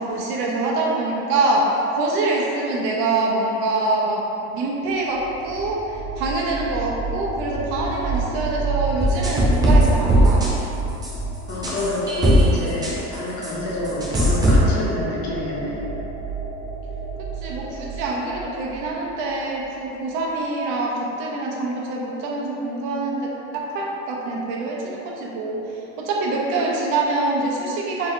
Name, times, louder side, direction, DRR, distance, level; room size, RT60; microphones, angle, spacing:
voice 1, 0.0-10.4 17.4-25.6 26.0-28.1, right 2 dB, 70° right, -2 dB, 0.8 m, -25 dB
sound 1, 4.9-19.7, right 4 dB, 20° left, 1.4 m, -30 dB
sound 2, 9.0-10.5 11.0-11.1 11.6-12.4 12.8-12.9 13.4-13.5 14.0-14.6, equal, 10° right, 0.4 m, -17 dB
voice 2, 11.5-15.8, left 1 dB, 60° left, -5 dB, 1.0 m, -28 dB
3.3 x 2.9 x 3.6 m, 2.9 s
cardioid pair, 155°, 33 cm